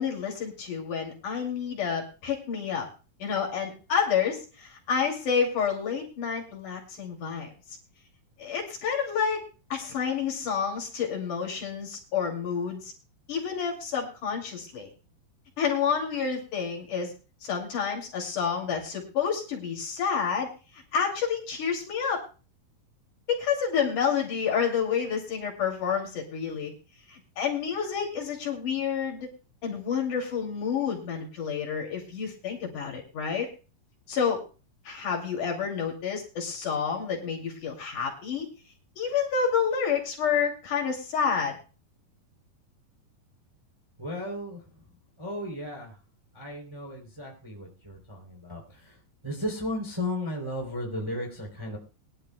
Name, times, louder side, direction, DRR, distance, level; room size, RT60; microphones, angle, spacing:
voice 1, 0.0-2.9 3.2-7.5 8.4-9.4 9.7-12.9 13.3-14.9 15.6-17.1 17.4-20.5 20.7-22.2 23.3-26.7 27.1-29.3 29.6-33.5 34.1-34.4 34.9-38.5 39.0-41.6, left 6 dB, 60° left, 0 dB, 4.0 m, -29 dB
voice 2, 44.0-44.8 45.2-46.0 46.3-51.8, left 1 dB, 10° right, 0 dB, 2.5 m, -35 dB
22.0 x 11.5 x 2.2 m, 0.34 s
omnidirectional pair, 4.1 m